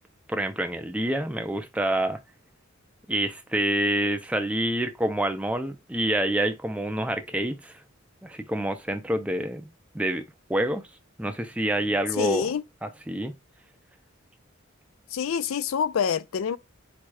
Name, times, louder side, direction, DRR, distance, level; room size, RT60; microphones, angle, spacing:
voice 1, 0.3-2.2 3.1-7.7 8.2-9.7 9.9-10.2 10.5-10.8 11.2-12.5 12.8-13.4, right 1 dB, 5° right, 0.5 m, -27 dB
voice 2, 12.2-12.6 15.1-16.6, left 7 dB, 65° left, 0.4 m, -26 dB
4.3 x 2.3 x 4.7 m
head